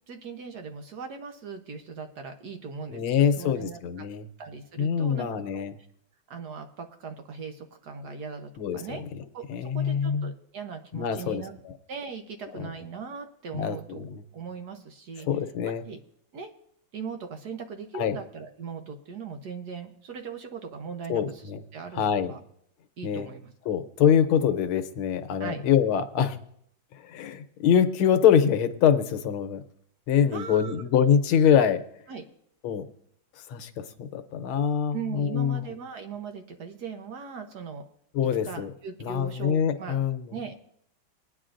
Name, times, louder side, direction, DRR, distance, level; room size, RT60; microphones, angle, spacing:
voice 1, 0.1-4.0 4.4-5.6 6.3-9.0 9.3-9.4 9.7-11.5 11.9-14.0 14.3-15.3 15.8-16.0 16.3-16.5 16.9-21.4 21.7-22.4 23.0-23.5 25.4-25.6 30.3-30.9 32.1-32.2 34.9-37.8 38.4-40.0 40.3-40.7, right 5 dB, 60° right, 5 dB, 1.3 m, -39 dB
voice 2, 2.9-4.3 4.8-5.8 8.6-8.8 9.5-10.3 10.9-11.8 12.5-12.7 13.5-14.2 15.3-15.8 17.9-18.1 21.1-21.6 21.9-22.3 23.0-23.3 23.7-26.4 26.9-29.6 30.1-31.8 32.6-32.8 33.5-35.6 38.1-38.7 39.0-40.3, left 8 dB, 90° left, 10 dB, 1.6 m, -24 dB
20.5 x 9.5 x 2.5 m, 0.70 s
omnidirectional pair, 2.2 m